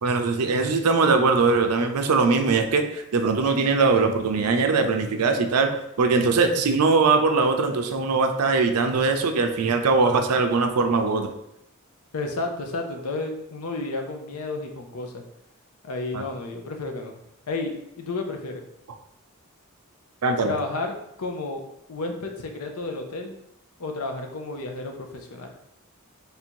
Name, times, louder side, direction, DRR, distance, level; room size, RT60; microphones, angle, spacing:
voice 1, 0.0-11.3 16.1-16.3 20.2-20.6, right 4 dB, 90° right, 5 dB, 0.5 m, -21 dB
voice 2, 12.1-15.2 15.8-17.1 17.5-18.6 20.4-21.6 21.9-23.4 23.8-25.5, left 3 dB, 80° left, 3 dB, 0.6 m, -32 dB
3.3 x 2.7 x 4.5 m, 0.80 s
head